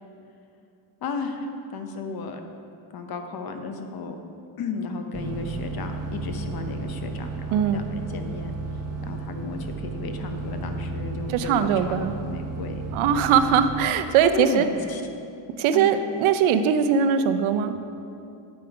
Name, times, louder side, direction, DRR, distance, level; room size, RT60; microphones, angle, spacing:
voice 1, 1.0-2.4 2.9-4.2 4.6-8.5 9.0-12.8 14.2-15.0 15.7-16.0, left 4 dB, 45° left, 6 dB, 0.8 m, -34 dB
sound 1, 5.1-13.9, right 3 dB, 30° right, 0.9 m, -33 dB
voice 2, 7.5-7.8 11.3-12.2 12.9-14.7 15.6-17.7, right 7 dB, 70° right, 9 dB, 0.6 m, -21 dB
8.4 x 4.9 x 4.7 m, 2.6 s
cardioid pair, 100°, 49 cm